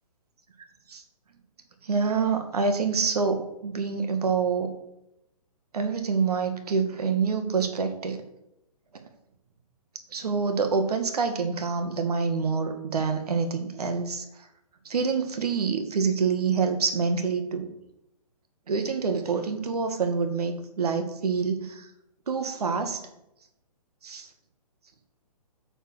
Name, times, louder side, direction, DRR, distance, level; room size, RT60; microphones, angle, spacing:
voice 1, 1.8-4.7 5.7-8.2 10.1-14.3 14.9-17.7 18.7-21.9 22.3-23.0 24.0-24.3, right 5 dB, 75° right, 7 dB, 2.0 m, -26 dB
9.7 x 6.7 x 6.3 m, 0.87 s
hypercardioid pair, 150°, 20 cm